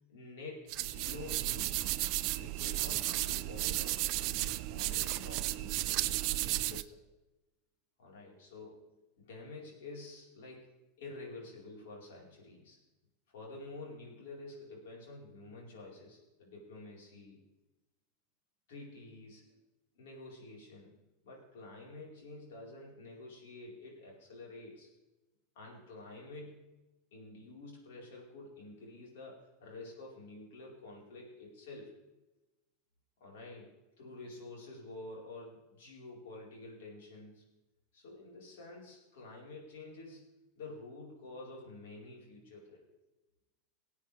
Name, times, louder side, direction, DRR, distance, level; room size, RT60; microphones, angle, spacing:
voice 1, 0.1-2.1 2.4-7.0 8.0-8.8 9.2-10.7 11.0-12.8 13.3-17.4 18.7-19.6 19.9-20.9 21.2-24.9 25.5-26.6 27.1-32.0 33.2-33.7 34.0-37.4 37.9-40.3 40.6-42.8, left 2 dB, 70° left, -2 dB, 4.3 m, -49 dB
sound 1, 0.7-6.8, right 17 dB, 55° right, 0.5 m, -34 dB
19.5 x 8.4 x 3.4 m, 1.0 s
hypercardioid pair, 90°, 0 cm